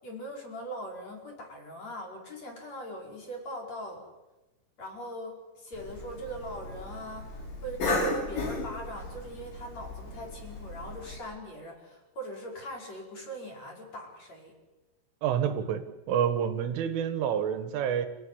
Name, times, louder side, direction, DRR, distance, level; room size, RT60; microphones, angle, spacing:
voice 1, 0.0-4.0 4.8-14.5, right 1 dB, 35° left, 0 dB, 5.7 m, -41 dB
Cough, 5.7-11.2, left 2 dB, 70° left, 9.1 m, -35 dB
voice 2, 15.2-18.1, right 8 dB, 85° right, 10 dB, 4.0 m, -28 dB
29.5 x 16.5 x 9.9 m, 1.1 s
omnidirectional pair, 5.5 m